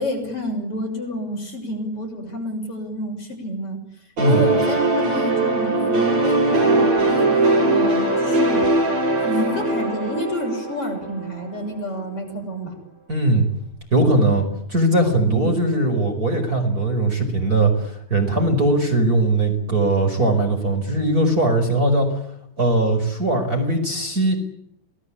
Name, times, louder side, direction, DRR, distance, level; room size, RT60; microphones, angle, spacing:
voice 1, 0.0-3.8 4.2-7.3 7.7-8.7 9.2-12.7 15.3-15.5, left 1 dB, 40° left, 2 dB, 7.4 m, -29 dB
sound 1, 4.2-11.6, right 2 dB, 55° right, 7.3 m, -20 dB
voice 2, 13.1-13.4 13.9-22.2 22.6-24.4, right 2 dB, 25° right, 4 dB, 5.4 m, -20 dB
29.0 x 19.5 x 8.6 m, 0.76 s
omnidirectional pair, 3.9 m